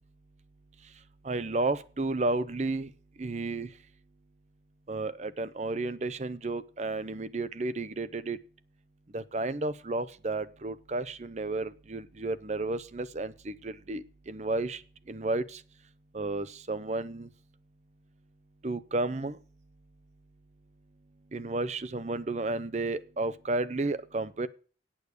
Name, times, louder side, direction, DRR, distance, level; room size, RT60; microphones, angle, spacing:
voice 1, 1.2-2.9 3.2-3.7 4.9-8.4 9.1-14.8 15.1-15.6 16.1-17.3 18.6-19.4 21.3-24.5, right 2 dB, 40° right, 15 dB, 0.6 m, -32 dB
8.8 x 6.5 x 8.2 m, 0.39 s
head